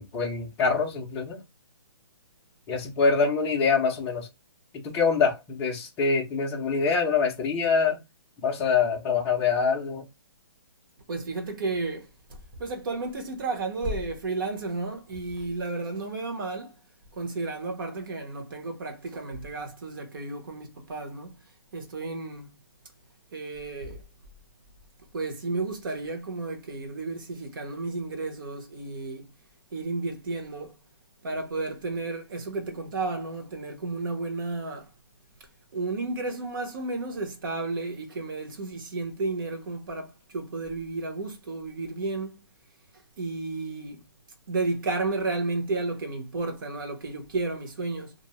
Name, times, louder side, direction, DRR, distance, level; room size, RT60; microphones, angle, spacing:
voice 1, 0.0-1.4 2.7-4.3 4.7-8.0 8.4-10.0, left 5 dB, 10° left, 0.4 m, -25 dB
voice 2, 11.1-16.7 17.1-21.4 21.7-22.6 23.3-24.0 25.1-29.3 29.7-30.8 31.2-34.9 35.7-42.5 43.2-44.1 44.5-48.1, right 3 dB, 50° right, 0.9 m, -32 dB
2.5 x 2.0 x 3.0 m
hypercardioid pair, 165°, 14 cm